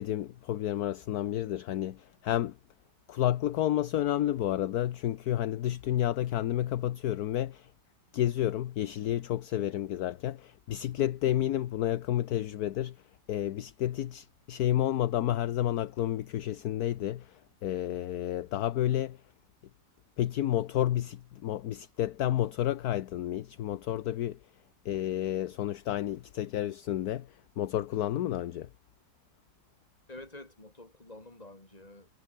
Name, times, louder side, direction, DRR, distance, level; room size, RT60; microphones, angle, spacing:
voice 1, 0.0-2.6 3.1-7.7 8.1-13.0 13.3-19.2 20.2-24.4 24.8-28.7, left 12 dB, 65° left, 1.2 m, -30 dB
voice 2, 30.1-32.1, left 2 dB, 20° left, 4.0 m, -48 dB
omnidirectional pair, 1.9 m